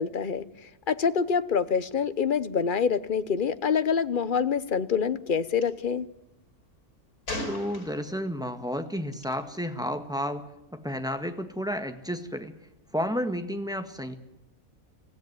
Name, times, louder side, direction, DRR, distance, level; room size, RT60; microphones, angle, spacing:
voice 1, 0.0-6.1, left 6 dB, 40° left, 14 dB, 1.0 m, -26 dB
Gunshot gunfire, 5.5-5.7 7.3-8.3 9.1-9.3, left 2 dB, 90° left, 5.3 m, -36 dB
voice 2, 7.4-10.4 10.7-12.6 12.9-14.1, equal, 5° right, 7 dB, 1.6 m, -31 dB
25.5 x 15.5 x 9.6 m, 0.90 s
omnidirectional pair, 1.6 m